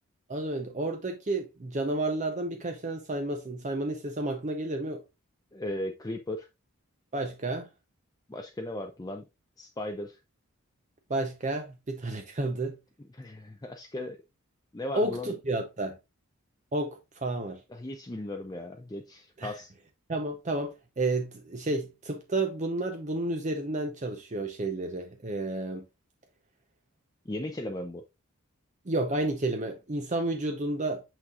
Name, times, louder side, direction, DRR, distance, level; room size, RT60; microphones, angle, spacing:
voice 1, 0.3-5.0 7.1-7.7 11.1-12.8 14.9-16.0 16.7-17.6 19.4-19.5 20.1-25.9 28.9-31.0, right 2 dB, 35° right, 0.7 m, -31 dB
voice 2, 5.5-6.5 8.3-9.2 9.6-10.2 13.1-14.2 14.7-15.4 17.7-19.7 27.3-28.0, left 1 dB, 15° left, 0.5 m, -37 dB
6.3 x 6.1 x 2.4 m
head